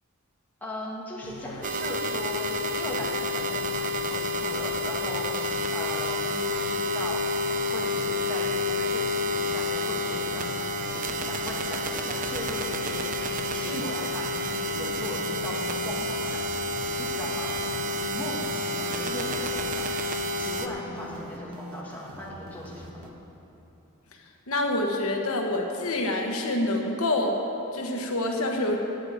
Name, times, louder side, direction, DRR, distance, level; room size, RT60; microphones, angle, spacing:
voice 1, 0.6-2.5 2.8-23.1, left 1 dB, 10° left, -6 dB, 2.1 m, -38 dB
sound 1, 1.2-20.0, equal, 45° left, 0.8 m, -44 dB
sound 2, 1.6-20.7, left 1 dB, 40° right, 0.6 m, -29 dB
sound 3, 14.4-23.1, equal, 75° right, 1.2 m, -45 dB
voice 2, 24.5-27.4 27.7-28.8, left 1 dB, 85° left, 2 dB, 1.1 m, -27 dB
8.9 x 8.7 x 8.2 m, 2.9 s
head